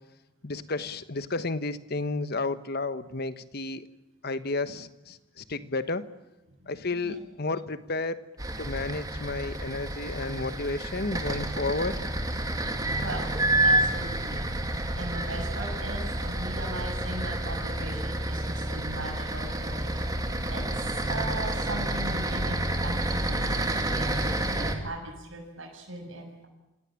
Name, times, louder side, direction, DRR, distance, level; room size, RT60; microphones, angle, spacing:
voice 1, 0.4-3.9 4.2-6.0 6.7-8.2 8.6-12.0, left 3 dB, 50° left, 12 dB, 1.3 m, -32 dB
voice 2, 6.6-7.2 13.0-13.3 13.6-14.5 15.0-20.0 20.5-20.6 21.1-22.6 22.8-26.5, right 1 dB, 70° right, 0 dB, 7.1 m, -39 dB
sound 1, 8.4-24.7, right 1 dB, 20° right, 2.7 m, -29 dB
26.5 x 17.5 x 8.8 m, 1.0 s
head